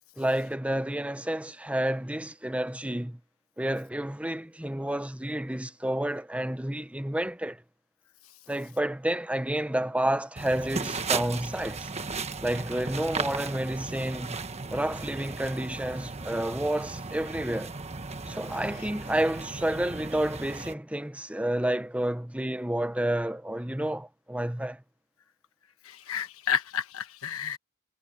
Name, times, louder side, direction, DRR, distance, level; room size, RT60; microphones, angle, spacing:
voice 1, 0.2-3.2 3.6-7.6 8.5-11.9 12.4-14.4 14.7-17.7 18.3-24.8, right 1 dB, 5° right, 1.0 m, -30 dB
sound 1, 10.4-20.7, right 4 dB, 30° right, 1.3 m, -36 dB
voice 2, 25.8-27.6, left 8 dB, 65° left, 1.2 m, -31 dB
head